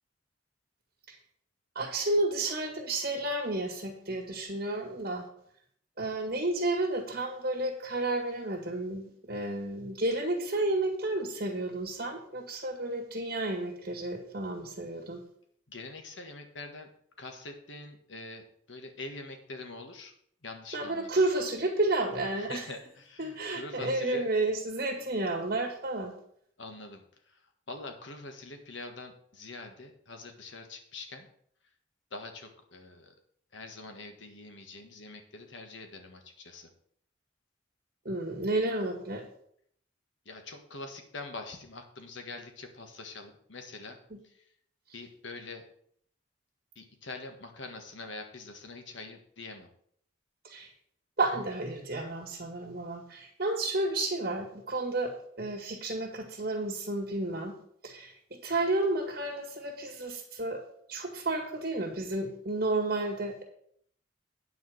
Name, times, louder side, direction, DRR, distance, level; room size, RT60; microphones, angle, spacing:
voice 1, 1.8-5.2 6.0-15.2 20.7-22.7 23.2-26.1 38.1-39.2 50.4-50.7 51.2-57.5 57.8-58.1 58.4-60.6 60.9-63.4, right 2 dB, 50° right, 0 dB, 1.9 m, -31 dB
voice 2, 15.7-16.9 17.2-20.1 20.4-21.1 22.4-24.3 26.6-31.3 32.1-33.1 33.5-36.7 40.2-44.0 44.2-44.4 44.9-45.6 46.7-49.7, left 3 dB, 75° left, 5 dB, 1.7 m, -44 dB
9.4 x 5.0 x 7.7 m, 0.66 s
head